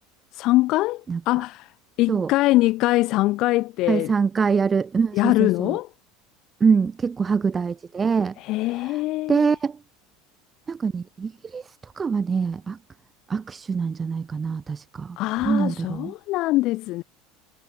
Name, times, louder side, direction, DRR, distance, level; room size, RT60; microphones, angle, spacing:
voice 1, 0.3-1.0 1.3-1.7 2.0-4.1 5.1-5.9 8.4-9.5 15.2-17.0, left 18 dB, 50° left, 0.7 m, -22 dB
voice 2, 3.9-5.8 6.6-8.3 8.8-9.0 9.3-9.8 10.7-11.6 12.0-12.8 13.3-15.2 15.4-16.1, right 5 dB, 20° right, 0.6 m, -24 dB
supercardioid pair, 140°, 0 cm